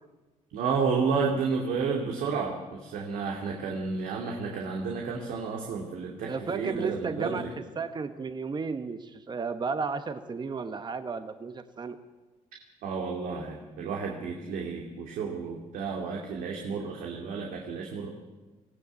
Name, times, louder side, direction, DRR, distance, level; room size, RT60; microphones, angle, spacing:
voice 1, 0.5-7.5 12.8-18.1, right 5 dB, 85° right, 0 dB, 2.6 m, -31 dB
voice 2, 6.2-7.5 7.8-12.0, right 5 dB, 30° right, 9 dB, 1.1 m, -33 dB
20.5 x 16.0 x 8.2 m, 1.2 s
cardioid pair, 90°, 14 cm